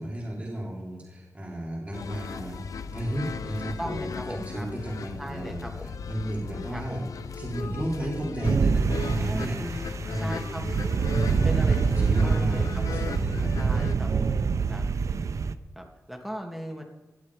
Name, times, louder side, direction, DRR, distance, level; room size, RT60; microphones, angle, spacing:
voice 1, 0.0-7.0 7.3-9.6 10.0-10.7 11.1-11.6 12.0-13.8, right 1 dB, 25° right, -4 dB, 3.8 m, -34 dB
sound 1, 1.9-14.0, left 6 dB, 85° left, 0.7 m, -37 dB
voice 2, 3.8-4.7 5.2-5.9 6.7-7.0 9.2-9.8 10.1-10.6 11.4-13.0 13.6-14.3 14.7-14.9 15.7-16.8, equal, ahead, 2 dB, 2.3 m, -37 dB
sound 2, 8.4-15.5, right 5 dB, 65° right, 0.7 m, -25 dB
18.5 x 11.5 x 4.9 m, 1.2 s
wide cardioid pair, 95°, 6 cm